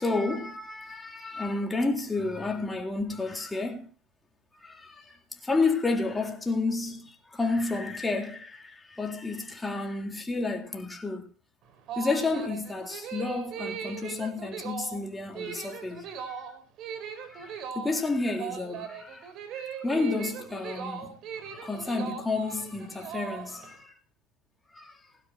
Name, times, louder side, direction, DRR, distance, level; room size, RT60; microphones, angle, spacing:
voice 1, 0.0-3.9 4.6-11.3 12.0-16.4 17.2-21.2 21.4-23.9 24.7-25.0, left 3 dB, 10° left, 3.7 m, -31 dB
sound 1, 11.6-23.8, right 7 dB, 50° right, 4.7 m, -39 dB
21.0 x 12.0 x 2.8 m
supercardioid pair, 120°, 0 cm